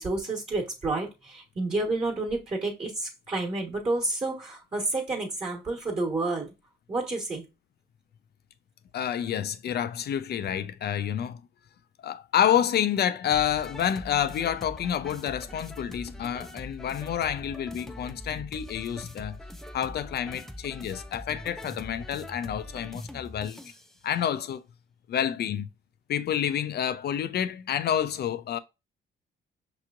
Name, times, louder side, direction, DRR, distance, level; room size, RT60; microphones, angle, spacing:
voice 1, 0.0-6.5 6.9-7.4, right 2 dB, 30° right, 1.3 m, -30 dB
voice 2, 8.9-11.4 12.0-19.4 19.7-23.6 24.0-24.6 25.1-25.7 26.1-28.6, left 9 dB, 55° left, 0.5 m, -28 dB
sound 1, 13.3-23.9, left 1 dB, ahead, 0.4 m, -43 dB
5.5 x 3.0 x 2.4 m
cardioid pair, 90°, 20 cm